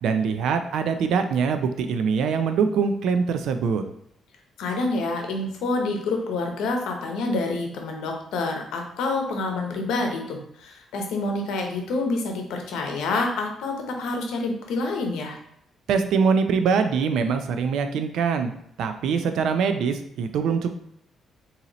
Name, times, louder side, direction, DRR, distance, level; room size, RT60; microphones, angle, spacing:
voice 1, 0.0-3.8 15.9-18.5 18.8-20.7, right 5 dB, 80° right, 8 dB, 0.4 m, -23 dB
voice 2, 4.6-15.4, left 3 dB, 85° left, 2 dB, 0.8 m, -27 dB
4.0 x 2.8 x 2.9 m, 0.74 s
cardioid pair, 90°, 0 cm